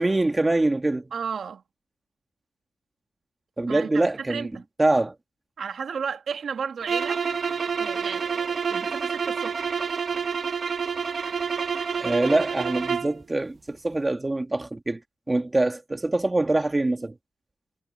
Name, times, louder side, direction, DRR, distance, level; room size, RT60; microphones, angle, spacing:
voice 1, 0.0-1.1 3.6-4.5 4.8-5.1 12.0-15.0 15.3-17.1, right 2 dB, 20° right, 1.8 m, -24 dB
voice 2, 1.1-1.6 3.7-4.6 5.6-7.2 7.8-9.8, right 6 dB, 75° right, 1.7 m, -34 dB
sound 1, 6.8-13.2, right 6 dB, 60° right, 1.3 m, -28 dB
cardioid pair, 85°, 0 cm